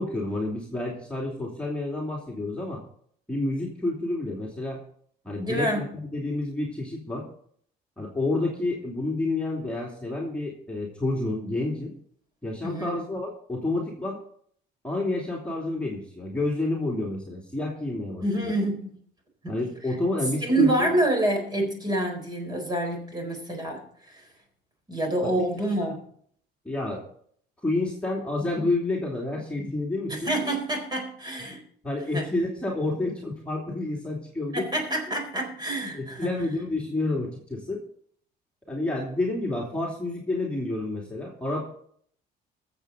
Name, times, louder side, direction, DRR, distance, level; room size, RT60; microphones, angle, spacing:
voice 1, 0.0-2.8 3.3-4.8 5.2-7.3 8.0-11.9 12.4-14.2 14.8-18.5 19.5-21.0 25.2-25.5 26.6-27.0 27.6-30.3 31.8-34.7 35.9-37.8 38.7-41.6, left 2 dB, 5° left, -3 dB, 2.7 m, -29 dB
voice 2, 5.4-5.9 12.6-13.0 18.2-19.0 19.4-19.6 20.4-24.3 24.9-26.1 30.1-31.6 32.1-32.3 34.5-36.4, right 1 dB, 25° right, 3 dB, 4.2 m, -27 dB
21.5 x 7.5 x 3.9 m, 0.63 s
cardioid pair, 110°, 17 cm